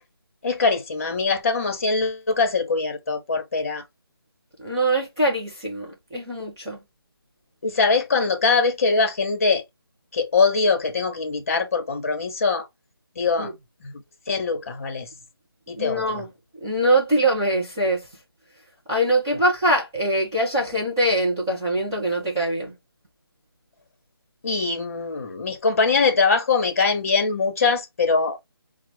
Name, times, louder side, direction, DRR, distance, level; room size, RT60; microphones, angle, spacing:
voice 1, 0.4-3.8 7.6-9.6 10.1-12.7 13.2-13.5 13.8-14.0 14.3-15.1 15.7-16.2 19.3-19.4 24.4-28.4, left 4 dB, 35° left, 0.9 m, -22 dB
voice 2, 4.6-6.8 13.4-13.5 15.7-16.3 16.6-18.0 18.9-22.7, right 1 dB, 10° right, 0.4 m, -23 dB
5.6 x 2.1 x 3.1 m
figure-of-eight pair, 165°, 13 cm